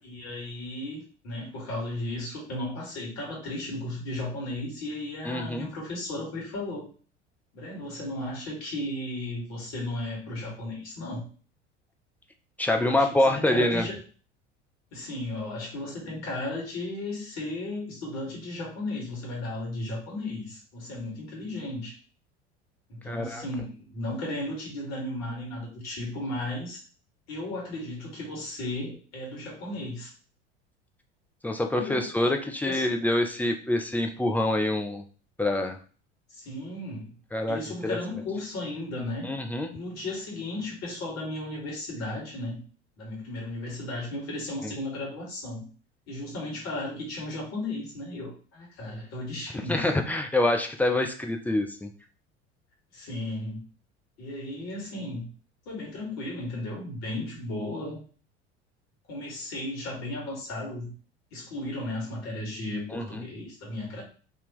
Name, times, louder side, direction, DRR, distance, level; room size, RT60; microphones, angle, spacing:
voice 1, 0.0-6.9 7.5-11.2 12.7-14.0 14.9-22.0 22.9-26.8 27.3-30.1 31.8-32.1 32.7-32.8 36.3-37.1 37.5-39.3 39.7-42.6 43.0-45.7 46.1-49.9 52.9-53.6 54.2-55.3 55.7-58.0 59.1-60.9 61.3-64.0, left 1 dB, 50° left, -3 dB, 2.0 m, -35 dB
voice 2, 5.2-5.7 12.6-13.9 23.1-23.5 31.4-35.0 35.4-35.8 37.3-38.0 39.2-39.7 44.6-44.7 49.7-51.9 62.9-63.2, left 1 dB, 5° left, 4 dB, 0.4 m, -26 dB
3.6 x 2.8 x 3.0 m, 0.39 s
figure-of-eight pair, 70°, 34 cm